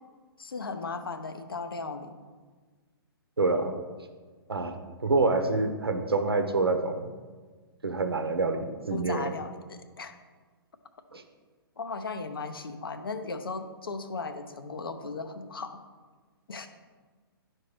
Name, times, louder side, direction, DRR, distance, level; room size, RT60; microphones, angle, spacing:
voice 1, 0.4-2.1 8.9-10.1 11.8-15.8 16.5-16.7, left 4 dB, 65° left, 8 dB, 0.8 m, -36 dB
voice 2, 3.4-3.7 4.5-7.1 7.8-9.3 11.1-11.2, right 3 dB, 75° right, 6 dB, 0.9 m, -27 dB
11.5 x 4.5 x 3.2 m, 1.4 s
figure-of-eight pair, 125°, 13 cm